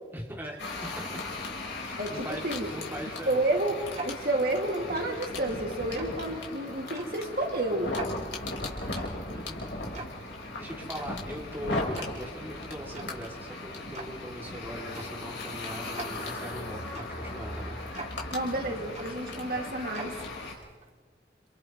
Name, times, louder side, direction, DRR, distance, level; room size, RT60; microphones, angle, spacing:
voice 1, 0.1-1.2 1.8-3.4 9.3-9.6 10.1-17.8, equal, 10° right, -2 dB, 2.6 m, -41 dB
sound 1, 0.6-20.5, left 2 dB, 85° left, 3.9 m, -37 dB
voice 2, 2.0-2.7 3.3-7.9 18.3-20.1, right 2 dB, 55° right, 2 dB, 2.2 m, -30 dB
Tick-tock, 2.7-21.0, right 3 dB, 40° right, 2.1 m, -47 dB
29.5 x 28.5 x 3.1 m, 1.5 s
head